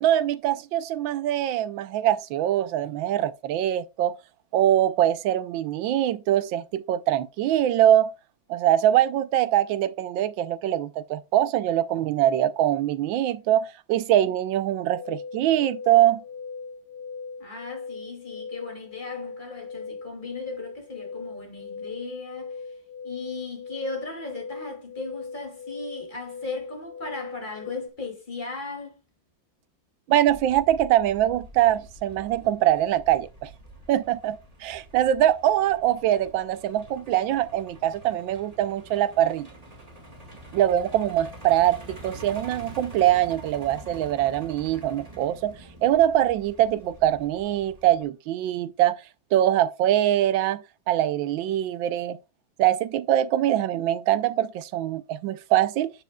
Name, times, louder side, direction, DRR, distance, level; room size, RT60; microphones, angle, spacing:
voice 1, 0.0-4.2 4.5-8.1 8.5-16.2 30.1-33.5 33.9-39.5 40.5-45.5 45.8-49.0 49.3-52.2 52.6-55.9, right 12 dB, 80° right, 1.4 m, -23 dB
sound 1, 14.9-27.9, left 5 dB, 70° left, 0.9 m, -39 dB
voice 2, 17.4-22.6 23.0-29.0, left 3 dB, 25° left, 2.6 m, -37 dB
Truck, 30.3-48.0, right 1 dB, 20° right, 2.0 m, -46 dB
10.5 x 6.9 x 2.3 m
omnidirectional pair, 2.1 m